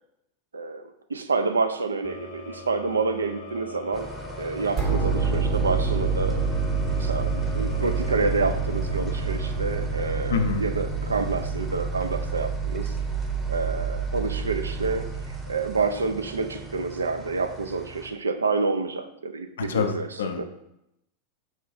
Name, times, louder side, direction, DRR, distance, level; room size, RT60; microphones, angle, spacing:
voice 1, 0.5-4.1 4.4-6.4 6.9-13.0 13.5-20.4, right 4 dB, 75° right, 8 dB, 0.3 m, -28 dB
sound 1, 2.0-11.0, left 2 dB, 50° left, 0.8 m, -42 dB
sound 2, 3.9-18.1, right 3 dB, 10° right, 0.7 m, -40 dB
sound 3, 4.8-15.7, right 4 dB, 35° right, 0.9 m, -28 dB
voice 2, 10.3-10.6 19.7-20.4, left 6 dB, 65° left, 7 dB, 0.4 m, -26 dB
4.8 x 2.2 x 4.2 m, 0.82 s
figure-of-eight pair, 90°, 0 cm